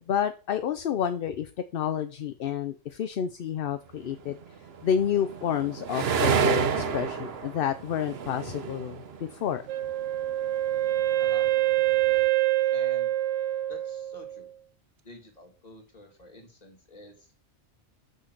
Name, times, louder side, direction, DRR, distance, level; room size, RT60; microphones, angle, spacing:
voice 1, 0.1-4.4 4.8-9.6, left 9 dB, 60° left, 9 dB, 0.7 m, -29 dB
sound 1, 3.1-3.2 3.7-10.3, right 1 dB, 30° right, 1.5 m, -50 dB
sound 2, 4.4-10.2 10.5-12.2, right 6 dB, 60° right, 1.0 m, -29 dB
Wind instrument woodwind instrument, 9.7-14.5, right 15 dB, 85° right, 1.1 m, -26 dB
voice 2, 11.2-11.5 12.7-13.1 13.7-14.5 15.0-17.4, left 1 dB, 35° left, 3 dB, 2.2 m, -48 dB
6.5 x 6.4 x 5.8 m, 0.36 s
omnidirectional pair, 1.2 m